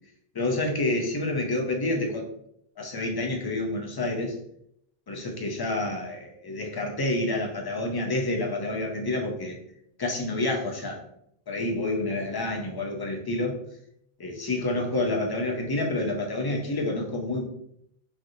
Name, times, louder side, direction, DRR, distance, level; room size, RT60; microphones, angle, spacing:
voice 1, 0.3-2.3 2.8-4.4 5.1-9.6 10.0-11.0 11.5-13.6 14.2-17.5, left 2 dB, 40° left, 1 dB, 0.3 m, -28 dB
3.2 x 2.5 x 2.6 m, 0.73 s
omnidirectional pair, 1.0 m